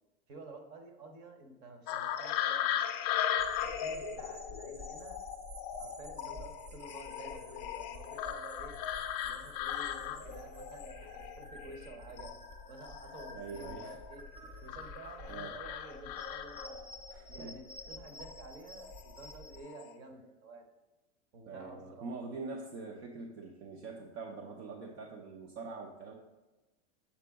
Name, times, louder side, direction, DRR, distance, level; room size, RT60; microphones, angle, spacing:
voice 1, 0.3-2.9 3.6-5.2 5.8-8.7 9.2-12.3 12.7-14.2 14.6-16.8 17.3-20.7 21.3-22.0, right 2 dB, 40° right, 5 dB, 0.8 m, -50 dB
sound 1, 1.9-11.9 12.2-14.1 14.7-16.9 18.1-18.4 18.8-19.3 19.6-19.9, left 10 dB, 35° left, 0.4 m, -38 dB
sound 2, 3.4-19.6, left 1 dB, 20° right, 0.4 m, -50 dB
voice 2, 13.3-14.0 15.3-15.6 17.1-17.6 21.5-26.1, right 4 dB, 70° right, 1 dB, 0.8 m, -44 dB
7.3 x 3.8 x 3.5 m, 1.1 s
supercardioid pair, 160°, 34 cm